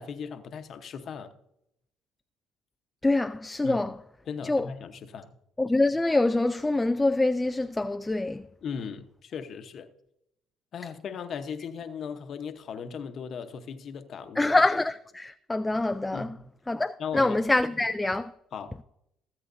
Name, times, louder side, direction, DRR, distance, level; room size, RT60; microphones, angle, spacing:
voice 1, 0.0-1.3 3.6-3.8 4.3-5.3 8.6-9.9 10.7-14.5 16.1-16.5 17.0-17.4 18.5-18.8, left 6 dB, 55° left, 1.0 m, -37 dB
voice 2, 3.0-3.9 4.4-4.7 5.6-8.4 14.4-16.3 16.7-18.3, left 2 dB, 10° left, 0.3 m, -25 dB
17.0 x 7.8 x 2.7 m
cardioid pair, 100°, 0 cm